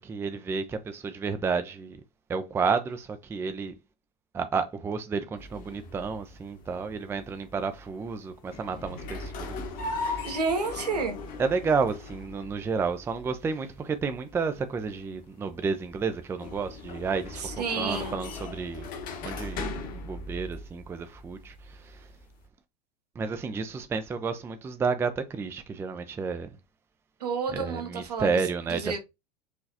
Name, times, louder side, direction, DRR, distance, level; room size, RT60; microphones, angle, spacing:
voice 1, 0.0-2.0 2.3-3.7 4.3-9.7 10.0-10.4 11.4-18.9 19.2-22.1 23.2-26.6 27.5-29.0, right 5 dB, 10° right, 0.4 m, -31 dB
sound 1, 5.4-22.4, left 3 dB, 40° left, 1.1 m, -39 dB
voice 2, 10.2-11.2 17.4-18.2 27.2-28.4 28.7-29.0, right 4 dB, 70° right, 1.2 m, -30 dB
4.8 x 3.0 x 2.7 m
figure-of-eight pair, 80°, 21 cm